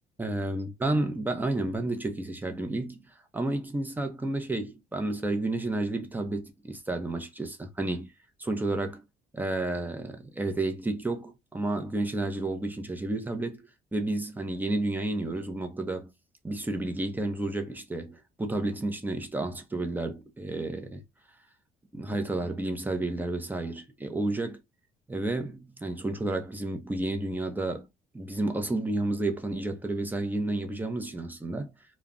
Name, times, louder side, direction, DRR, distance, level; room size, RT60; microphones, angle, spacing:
voice 1, 0.2-8.1 8.4-9.0 9.3-16.1 16.4-21.0 21.9-24.6 25.1-27.9 28.1-31.7, right 2 dB, 10° right, 0.6 m, -31 dB
2.3 x 2.1 x 3.5 m
cardioid pair, 110°, 17 cm